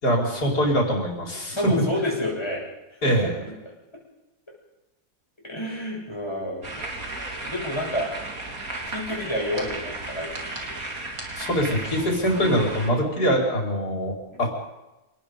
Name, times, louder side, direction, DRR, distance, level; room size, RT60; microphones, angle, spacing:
voice 1, 0.0-1.7 3.0-3.4 11.4-14.1 14.4-14.5, equal, 85° left, 0 dB, 5.4 m, -23 dB
voice 2, 1.5-2.6 3.0-3.5 5.4-6.8 7.4-8.1 8.9-10.8 14.3-14.4, left 1 dB, 15° left, -2 dB, 7.3 m, -29 dB
sound 1, 6.6-12.9, right 2 dB, 65° right, 3.9 m, -34 dB
26.5 x 19.0 x 5.3 m, 0.98 s
omnidirectional pair, 1.7 m